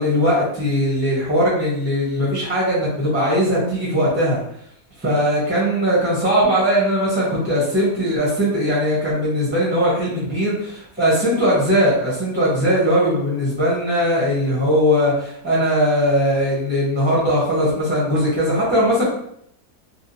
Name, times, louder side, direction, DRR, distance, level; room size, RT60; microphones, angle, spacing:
voice 1, 0.0-4.4 5.0-19.1, equal, 10° right, -6 dB, 0.8 m, -19 dB
3.5 x 2.4 x 2.7 m, 0.71 s
omnidirectional pair, 1.7 m